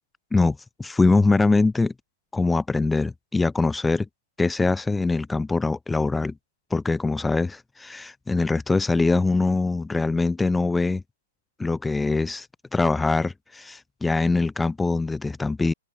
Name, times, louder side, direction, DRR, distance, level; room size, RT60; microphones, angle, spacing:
voice 1, 0.3-1.9 2.3-4.1 4.4-6.3 6.7-11.0 11.6-12.5 12.7-15.7, left 3 dB, 5° left, 7.7 m, -23 dB
open air
hypercardioid pair, 120°, 0 cm